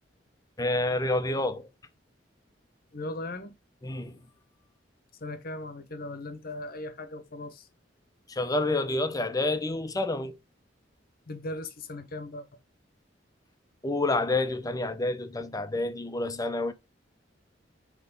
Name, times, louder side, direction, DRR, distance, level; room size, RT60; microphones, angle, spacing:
voice 1, 0.6-1.7 3.8-4.2 8.3-10.4 13.8-16.7, left 2 dB, 20° left, 0.7 m, -28 dB
voice 2, 2.9-3.5 5.2-7.7 11.3-12.5, left 2 dB, 55° left, 1.0 m, -38 dB
6.0 x 3.2 x 5.1 m
head